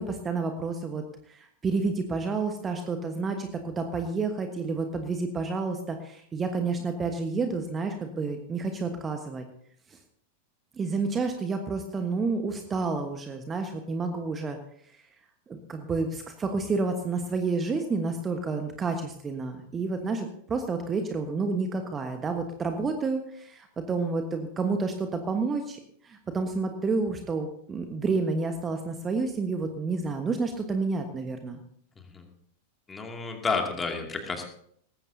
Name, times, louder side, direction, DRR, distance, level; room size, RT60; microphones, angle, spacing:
voice 1, 0.0-9.4 9.9-10.0 10.7-14.6 15.5-31.6, right 4 dB, 20° right, 6 dB, 1.3 m, -30 dB
voice 2, 32.0-32.3 32.9-34.5, left 4 dB, 15° left, 3 dB, 2.5 m, -31 dB
19.0 x 15.5 x 2.8 m, 0.66 s
figure-of-eight pair, 90°, 0 cm